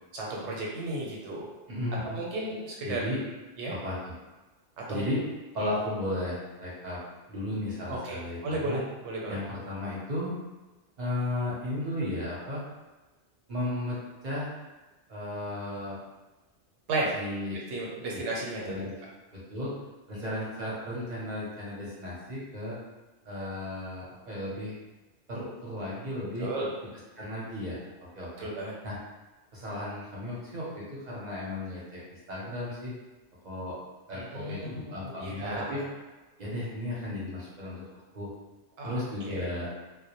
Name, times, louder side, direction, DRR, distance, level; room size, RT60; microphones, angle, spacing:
voice 1, 0.1-1.5 2.0-3.0 3.6-3.7 4.9-5.1 5.6-5.7 7.9-8.8 9.0-9.4 16.9-17.2 17.7-18.8 26.4-26.7 28.4-28.7 34.1-35.7 38.8-38.9 39.2-39.5, right 2 dB, 80° right, -3 dB, 0.9 m, -34 dB
voice 2, 1.7-2.1 2.8-3.2 3.7-4.1 4.9-5.2 5.5-7.0 7.3-8.8 9.3-10.3 11.0-12.6 13.5-14.0 14.2-14.5 15.1-16.0 17.1-17.6 18.1-18.2 18.6-18.9 19.3-19.7 20.1-22.8 23.2-24.8 25.3-26.5 27.2-27.8 28.1-28.5 28.8-29.0 29.5-32.9 33.4-33.8 34.1-35.8 36.4-38.3 38.8-39.7, left 1 dB, 45° right, -7 dB, 0.7 m, -34 dB
2.1 x 2.1 x 2.8 m, 1.2 s
omnidirectional pair, 1.2 m